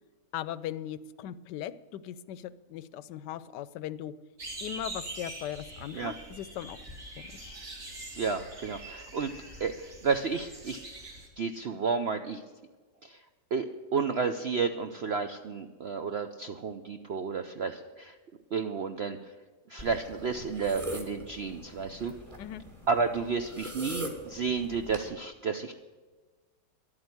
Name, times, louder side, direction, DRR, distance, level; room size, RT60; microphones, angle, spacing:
voice 1, 0.3-4.1 4.6-6.8 7.2-7.6 22.4-22.6, left 11 dB, 80° left, 17 dB, 1.2 m, -39 dB
sound 1, 4.4-11.3, right 2 dB, 40° right, 2.7 m, -44 dB
voice 2, 8.2-9.3 9.6-10.8 11.4-12.4 13.0-13.2 13.5-18.1 18.5-19.2 19.7-22.1 22.9-25.7, right 5 dB, 65° right, 8 dB, 0.6 m, -31 dB
sound 2, 19.8-25.1, right 1 dB, 20° right, 2.0 m, -42 dB
11.5 x 9.0 x 9.5 m, 1.4 s
omnidirectional pair, 1.9 m